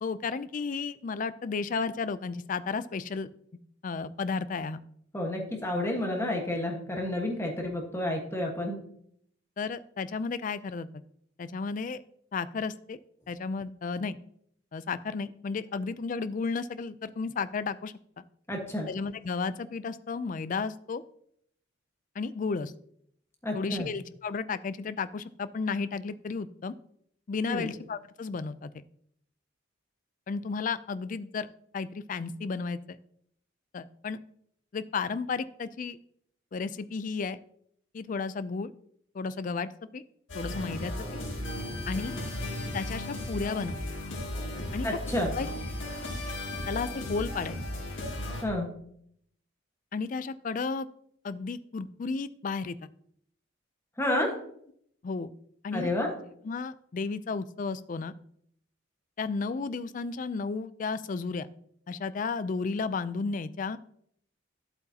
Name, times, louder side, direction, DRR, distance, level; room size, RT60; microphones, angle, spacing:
voice 1, 0.0-3.3 3.8-4.8 9.6-10.9 11.4-12.0 12.3-13.0 13.3-14.2 14.7-18.2 18.9-21.0 22.2-22.7 23.5-26.7 27.3-28.8 30.3-31.5 31.7-33.0 33.7-34.2 34.7-36.0 36.5-37.4 37.9-38.7 39.1-40.0 40.3-41.2 41.9-42.2 42.7-43.8 44.7-44.9 45.2-45.5 46.7-47.6 49.9-50.9 51.2-52.8 55.0-55.3 55.6-55.9 56.4-58.1 59.2-61.5 61.9-63.8, left 4 dB, 40° left, 15 dB, 0.4 m, -33 dB
voice 2, 5.1-8.8 18.5-18.9 23.4-23.9 27.5-27.7 44.8-45.3 48.4-48.7 54.0-54.3 55.7-56.1, left 1 dB, 15° left, 1 dB, 1.4 m, -30 dB
sound 1, 40.3-48.4, left 1 dB, 70° left, 2.4 m, -35 dB
11.0 x 7.9 x 2.8 m, 0.69 s
head